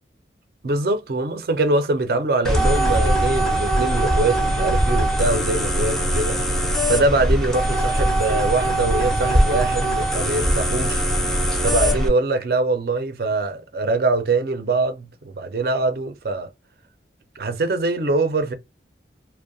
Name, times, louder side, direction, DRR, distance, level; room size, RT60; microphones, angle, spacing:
voice 1, 0.6-6.4 6.9-11.0 11.6-16.5 17.4-18.5, right 2 dB, 55° right, 0.4 m, -23 dB
sound 1, 2.4-12.1, equal, 5° left, 0.4 m, -21 dB
2.6 x 2.1 x 2.5 m
head